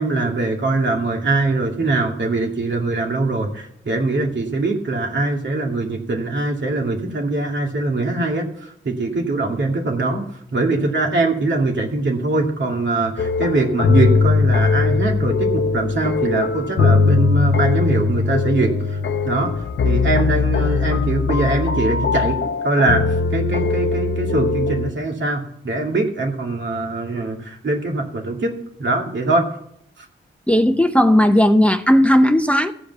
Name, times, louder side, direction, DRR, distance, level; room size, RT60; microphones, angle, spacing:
voice 1, 0.0-10.2 10.5-19.0 19.2-22.4 22.6-23.0 23.3-28.5 28.8-29.5 30.0-30.1, right 2 dB, 65° right, 1 dB, 2.3 m, -22 dB
sound 1, 13.2-24.9, left 4 dB, 70° left, 0.7 m, -20 dB
voice 2, 30.5-32.7, equal, 5° left, 8 dB, 0.6 m, -15 dB
15.0 x 5.1 x 8.2 m, 0.73 s
wide cardioid pair, 90°, 21 cm